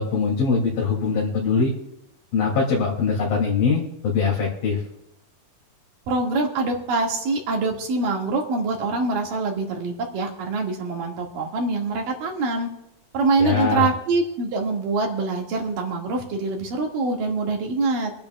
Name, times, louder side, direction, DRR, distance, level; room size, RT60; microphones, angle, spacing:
voice 1, 0.0-1.7 2.3-4.8 13.4-13.9, left 5 dB, 75° left, -4 dB, 4.3 m, -22 dB
voice 2, 6.1-12.7 13.1-18.1, right 3 dB, 70° right, 0 dB, 3.5 m, -24 dB
25.5 x 10.5 x 2.3 m, 0.85 s
omnidirectional pair, 4.2 m